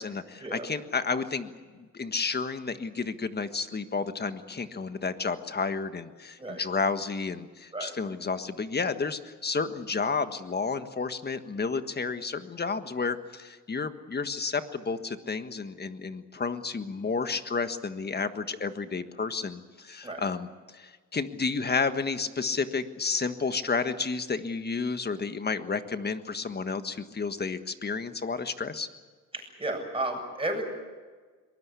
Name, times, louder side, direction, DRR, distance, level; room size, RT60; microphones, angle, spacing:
voice 1, 0.0-1.5 1.9-28.9, left 4 dB, 30° left, 9 dB, 1.6 m, -31 dB
voice 2, 29.3-30.6, right 2 dB, 15° right, 3 dB, 7.6 m, -33 dB
23.0 x 20.0 x 8.4 m, 1.4 s
cardioid pair, 95°, 32 cm